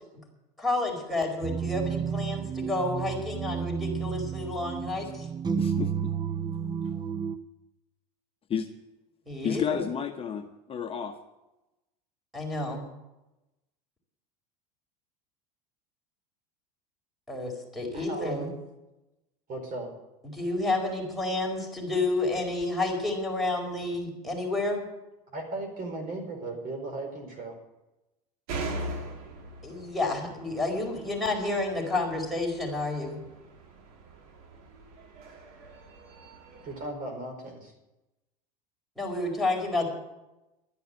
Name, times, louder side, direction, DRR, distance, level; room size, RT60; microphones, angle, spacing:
voice 1, 0.6-5.3 9.3-9.8 12.3-12.9 17.3-18.5 20.3-24.9 29.6-33.2 39.0-39.9, left 2 dB, ahead, -2 dB, 4.7 m, -30 dB
sound 1, 1.4-7.4, right 7 dB, 20° right, 0.7 m, -31 dB
voice 2, 5.6-6.1 8.5-8.7 9.4-11.2, left 8 dB, 30° left, 4 dB, 1.0 m, -31 dB
voice 3, 17.9-18.5 19.5-19.9 25.3-27.5 36.6-37.7, right 2 dB, 45° right, 4 dB, 4.6 m, -36 dB
sound 2, 28.5-36.9, right 2 dB, 70° right, 2.7 m, -41 dB
12.0 x 9.9 x 8.1 m, 0.98 s
hypercardioid pair, 95°, 20 cm